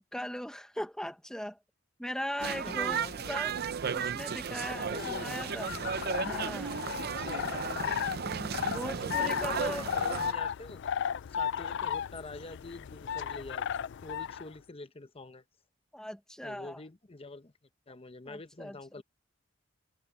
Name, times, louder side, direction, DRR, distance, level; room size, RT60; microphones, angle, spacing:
voice 1, 0.1-1.6 2.0-3.5 3.9-5.8 6.2-6.8 8.2-9.9 15.9-16.8 18.2-19.0, equal, 5° left, 1.2 m, -39 dB
sound 1, 2.4-10.3, right 7 dB, 50° right, 0.6 m, -35 dB
voice 2, 2.6-3.4 4.7-5.6 6.1-6.3 6.9-7.4 9.0-10.8 11.3-13.7 14.0-15.4 16.4-17.5 17.9-19.0, left 3 dB, 30° left, 0.9 m, -45 dB
sound 2, 4.7-14.5, left 8 dB, 60° left, 0.4 m, -35 dB
head